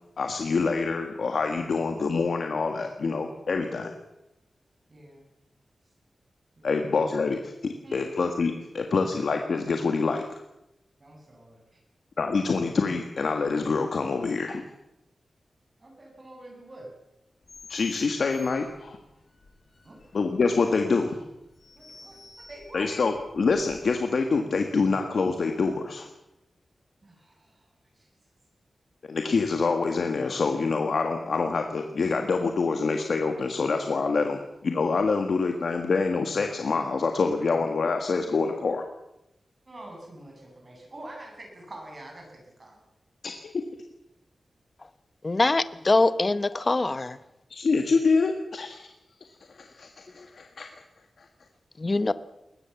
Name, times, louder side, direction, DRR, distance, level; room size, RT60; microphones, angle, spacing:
voice 1, 0.2-4.0 6.6-7.5 7.9-10.2 12.2-14.6 17.7-19.0 20.1-21.2 22.7-26.1 29.1-38.8 43.2-43.5 47.5-48.9 49.5-50.7, left 4 dB, 70° left, 5 dB, 1.7 m, -26 dB
voice 2, 4.9-5.3 6.6-6.9 7.8-8.1 11.0-11.8 15.8-16.9 19.8-20.0 21.7-23.0 27.0-27.7 27.9-28.1 39.6-42.8, right 1 dB, 35° right, 1 dB, 8.0 m, -46 dB
sound 1, 17.4-24.1, left 3 dB, 50° left, 5.2 m, -51 dB
voice 3, 45.2-47.2 51.8-52.1, left 2 dB, 30° left, 14 dB, 0.8 m, -23 dB
21.5 x 20.0 x 7.2 m, 0.89 s
wide cardioid pair, 115°, 0 cm